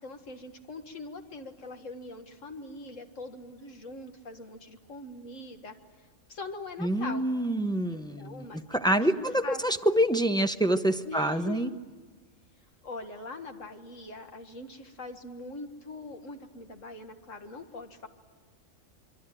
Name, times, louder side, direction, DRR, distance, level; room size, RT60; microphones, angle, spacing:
voice 1, 0.0-5.8 6.3-7.2 7.9-9.6 11.0-11.8 12.8-18.1, left 2 dB, 70° left, 5 dB, 2.1 m, -42 dB
voice 2, 6.8-11.7, right 1 dB, 5° left, 7 dB, 0.5 m, -26 dB
25.5 x 23.5 x 9.1 m, 1.4 s
omnidirectional pair, 1.4 m